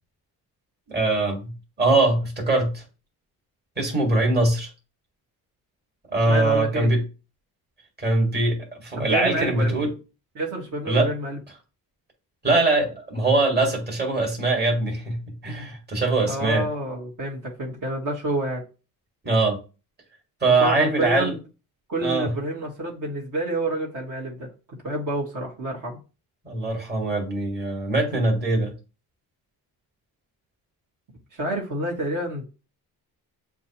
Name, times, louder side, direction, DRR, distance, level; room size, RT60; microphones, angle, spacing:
voice 1, 0.9-1.5 1.8-2.8 3.8-4.7 6.1-7.0 8.0-9.9 10.9-11.1 12.4-16.7 19.2-19.6 20.4-21.4 22.0-22.3 26.5-28.7, right 2 dB, 25° right, 1.9 m, -22 dB
voice 2, 6.2-6.9 9.0-9.9 10.3-11.4 16.3-18.6 20.6-21.4 21.9-24.5 24.8-26.0 31.3-32.5, right 1 dB, 55° right, 1.7 m, -28 dB
7.2 x 2.4 x 3.0 m
cardioid pair, 95°, 38 cm